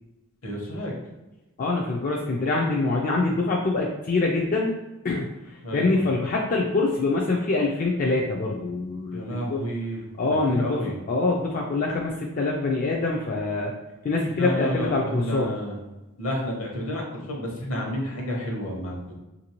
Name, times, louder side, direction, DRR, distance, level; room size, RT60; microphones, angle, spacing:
voice 1, 0.4-1.0 5.6-6.0 9.1-10.0 10.3-11.0 14.3-15.8 16.2-19.2, equal, 70° left, -1 dB, 1.0 m, -31 dB
voice 2, 1.6-4.7 5.0-5.3 5.7-9.6 10.2-10.8 11.1-13.7 14.0-15.5, left 3 dB, 40° left, -2 dB, 0.4 m, -24 dB
3.3 x 2.6 x 2.9 m, 1.1 s
head